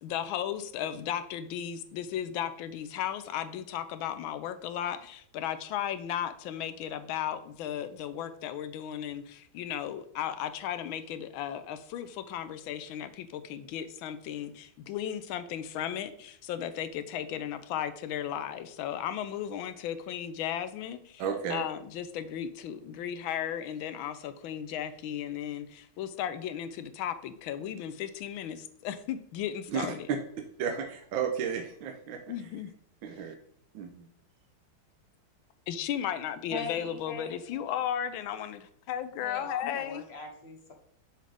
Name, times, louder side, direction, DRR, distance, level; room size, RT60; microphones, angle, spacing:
voice 1, 0.0-21.2 21.5-30.1 32.3-32.7 35.7-40.0, left 10 dB, 85° left, 11 dB, 1.4 m, -35 dB
voice 2, 21.2-21.6 29.7-29.9 30.6-32.2 33.0-33.3 33.7-34.1, right 7 dB, 75° right, 4 dB, 1.5 m, -33 dB
voice 3, 36.5-37.8 39.2-40.7, left 4 dB, 40° left, 2 dB, 1.0 m, -41 dB
7.4 x 5.8 x 3.4 m, 0.65 s
omnidirectional pair, 2.2 m